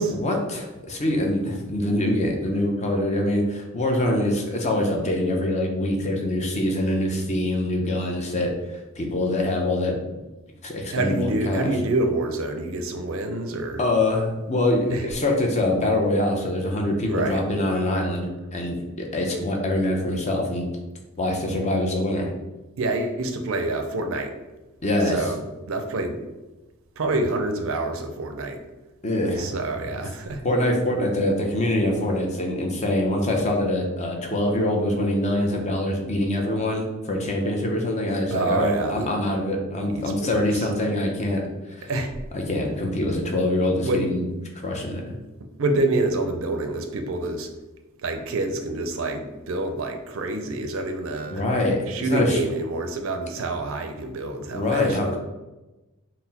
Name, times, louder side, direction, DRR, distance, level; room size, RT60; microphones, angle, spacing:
voice 1, 0.0-9.9 10.6-11.7 13.8-20.7 21.2-22.3 24.8-25.2 29.0-29.5 29.9-30.0 30.4-41.4 41.7-41.9 42.3-44.2 44.6-45.1 51.3-52.4 54.5-55.2, left 1 dB, 30° left, 1 dB, 0.6 m, -24 dB
voice 2, 10.9-13.8 14.9-15.1 17.1-17.4 22.8-24.4 25.1-26.2 27.0-28.6 29.4-30.4 38.3-39.1 39.9-40.7 41.9-42.1 43.8-44.0 45.6-47.5 48.0-51.4 51.9-55.2, right 2 dB, 65° right, 6 dB, 0.5 m, -27 dB
4.1 x 2.1 x 4.0 m, 1.1 s
head